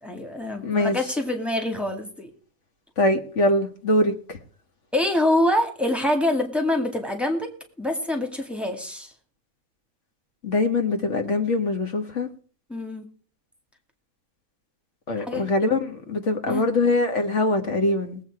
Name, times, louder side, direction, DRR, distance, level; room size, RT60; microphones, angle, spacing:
voice 1, 0.0-2.3 4.9-7.5 7.8-9.1 12.7-13.1 15.2-15.5 16.5-16.6, left 1 dB, ahead, 3 dB, 2.0 m, -25 dB
voice 2, 0.6-1.0 3.0-4.4 10.4-12.3 15.1-18.2, left 2 dB, 55° left, 6 dB, 1.8 m, -23 dB
19.5 x 8.2 x 4.8 m, 0.43 s
omnidirectional pair, 1.5 m